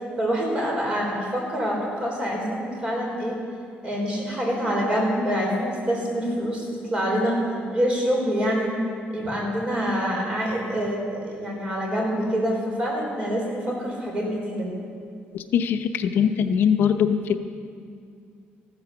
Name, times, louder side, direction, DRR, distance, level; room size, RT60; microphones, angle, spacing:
voice 1, 0.2-3.4 3.8-7.4 7.7-8.8 9.1-14.7, equal, 25° right, -1 dB, 3.9 m, -26 dB
voice 2, 15.3-17.4, left 8 dB, 60° left, 7 dB, 0.7 m, -22 dB
14.5 x 12.5 x 7.0 m, 2.3 s
cardioid pair, 165°, 4 cm